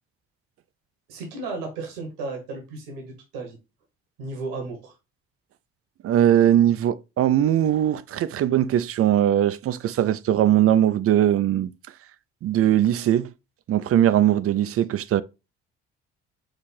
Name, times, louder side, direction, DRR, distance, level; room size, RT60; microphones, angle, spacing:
voice 1, 1.1-3.6 4.2-4.9, right 3 dB, 85° right, 1.3 m, -34 dB
voice 2, 6.0-11.7 12.4-13.3 13.7-15.2, right 11 dB, 50° right, 0.5 m, -20 dB
4.8 x 2.5 x 4.2 m
hypercardioid pair, 55°, 30 cm